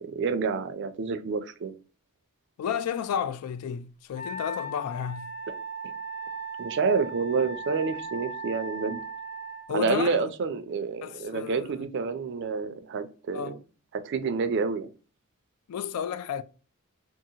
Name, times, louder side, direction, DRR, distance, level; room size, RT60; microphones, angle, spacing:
voice 1, 0.0-1.8 6.6-9.0 9.7-13.6 14.0-14.9, right 4 dB, 55° right, 0.4 m, -28 dB
voice 2, 2.6-5.3 9.7-10.2 11.0-11.7 13.3-13.6 15.7-16.4, left 8 dB, 90° left, 0.3 m, -32 dB
Wind instrument woodwind instrument, 4.1-9.7, right 2 dB, 35° left, 0.6 m, -37 dB
2.7 x 2.5 x 2.7 m
head